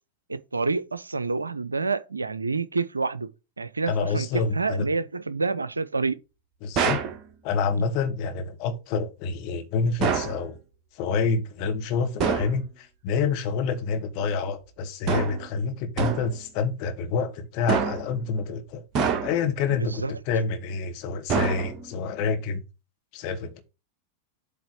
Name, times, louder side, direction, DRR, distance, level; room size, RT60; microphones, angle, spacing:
voice 1, 0.3-3.3 3.6-6.2 7.8-7.9 19.7-20.2, right 4 dB, 80° right, 0.5 m, -28 dB
voice 2, 3.9-4.8 6.6-7.0 7.4-10.6 11.0-18.8 19.2-22.6 23.1-23.6, left 5 dB, 45° left, 1.6 m, -27 dB
sound 1, 6.7-7.2 10.0-10.4 12.2-12.6 15.1-15.5 16.0-16.4 17.7-18.2 18.9-19.5 21.3-22.0, right 6 dB, 35° right, 1.3 m, -26 dB
8.0 x 3.4 x 6.4 m
figure-of-eight pair, 90°, 0 cm